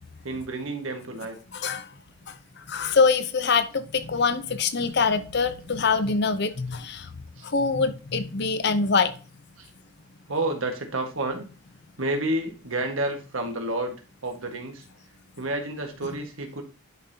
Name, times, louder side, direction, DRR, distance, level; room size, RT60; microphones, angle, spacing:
voice 1, 0.2-1.4 7.4-7.5 9.6-9.7 10.3-11.5 12.0-14.0 14.2-14.9 15.4-16.6, right 2 dB, 75° right, 1.5 m, -30 dB
voice 2, 1.5-1.9 2.3-7.1 7.4-9.1, left 4 dB, 55° left, 0.7 m, -24 dB
10.5 x 5.3 x 2.8 m
head